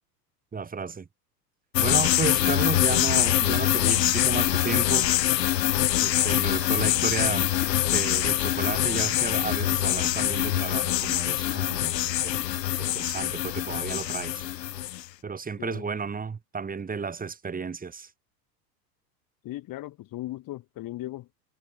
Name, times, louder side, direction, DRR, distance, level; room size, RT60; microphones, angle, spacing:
voice 1, 0.5-1.1 1.8-5.1 6.0-7.5 7.9-12.0 12.2-12.4 12.8-14.4 15.2-18.1, right 5 dB, 15° right, 2.7 m, -33 dB
sound 1, 1.7-15.0, left 13 dB, 75° left, 1.7 m, -24 dB
voice 2, 15.6-15.9 19.4-21.3, left 16 dB, 40° left, 4.6 m, -37 dB
hypercardioid pair, 90°, 49 cm